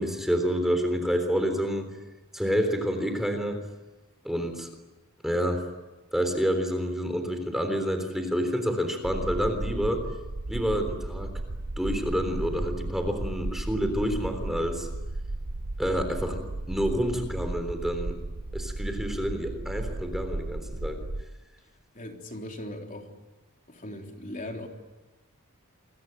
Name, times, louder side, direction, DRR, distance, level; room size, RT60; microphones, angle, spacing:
voice 1, 0.0-1.9 2.3-3.6 4.2-4.7 5.2-5.7 6.1-10.1 10.5-11.3 11.8-14.9 15.8-16.4 16.7-18.2 18.5-21.0, equal, ahead, 6 dB, 3.6 m, -28 dB
sound 1, 9.0-21.2, right 2 dB, 65° right, 1.0 m, -34 dB
voice 2, 21.9-23.1 23.7-24.7, left 1 dB, 35° left, 2 dB, 3.7 m, -39 dB
28.5 x 23.0 x 9.1 m, 1.2 s
head